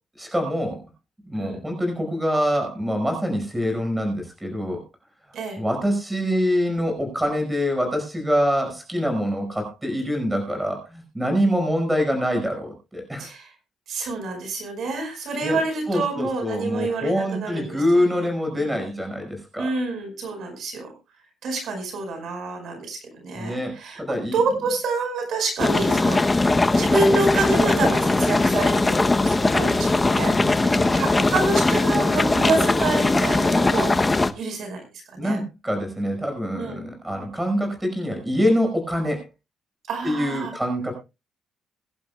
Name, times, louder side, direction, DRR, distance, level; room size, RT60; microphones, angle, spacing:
voice 1, 0.2-0.8 1.3-4.8 5.5-13.3 15.4-15.6 15.9-19.7 23.3-24.4 30.0-31.0 35.2-39.3 40.0-40.9, equal, 10° right, 3 dB, 5.1 m, -25 dB
voice 2, 13.9-18.3 18.6-18.8 19.6-20.9 21.4-23.0 23.2-24.0 24.3-33.9 34.3-34.8 35.1-35.4 36.6-36.8 39.9-40.5, right 3 dB, 65° right, 4 dB, 5.2 m, -27 dB
sound 1, 25.6-34.3, left 2 dB, 15° left, 0.8 m, -20 dB
22.0 x 11.0 x 2.3 m, 0.27 s
cardioid pair, 145°, 0 cm